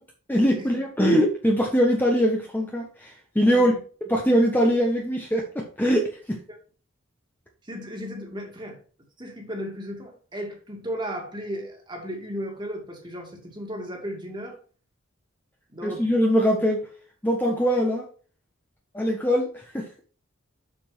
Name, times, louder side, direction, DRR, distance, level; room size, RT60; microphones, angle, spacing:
voice 1, 0.3-3.7 4.1-6.4 15.8-16.9 17.2-18.1 18.9-19.9, equal, 10° left, 1.1 m, -22 dB
voice 2, 3.5-3.8 6.5-6.6 7.6-8.8 9.2-14.6 15.7-16.1, equal, 20° right, 2.2 m, -35 dB
7.5 x 6.9 x 3.3 m
head